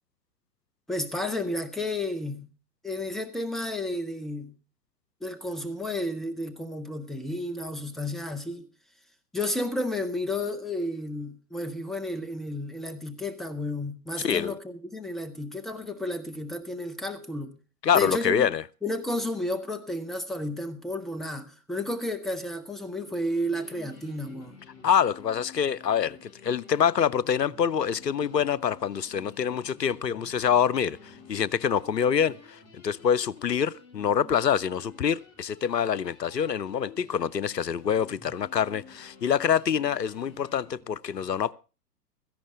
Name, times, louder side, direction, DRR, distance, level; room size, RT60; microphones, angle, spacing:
voice 1, 0.9-2.5 2.8-4.5 5.2-8.7 9.3-17.5 17.9-18.5 18.8-24.6, left 1 dB, ahead, 0.7 m, -32 dB
voice 2, 14.2-14.5 17.8-18.6 24.8-41.5, left 8 dB, 85° left, 0.7 m, -26 dB
sound 1, 23.5-40.8, left 5 dB, 30° left, 3.8 m, -51 dB
16.5 x 14.0 x 3.6 m
figure-of-eight pair, 110°, 48 cm